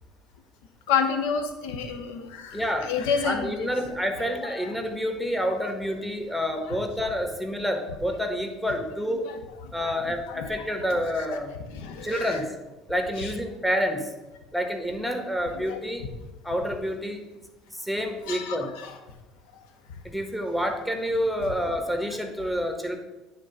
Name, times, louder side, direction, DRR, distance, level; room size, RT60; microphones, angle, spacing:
voice 1, 0.9-3.7 4.5-4.7 5.6-5.7 6.7-6.8 9.2-9.4 9.8-9.9 10.3-10.7 11.2-11.3 11.7-12.4 13.2-13.3 15.6-15.8 18.3-19.0, left 6 dB, 70° left, 6 dB, 1.0 m, -30 dB
voice 2, 2.5-2.9 3.2-9.3 9.7-11.5 12.0-12.5 12.9-14.1 14.5-16.0 16.4-17.2 17.7-18.7 20.0-23.0, equal, ahead, 4 dB, 1.4 m, -28 dB
9.5 x 3.8 x 5.6 m, 1.1 s
hypercardioid pair, 65°, 0 cm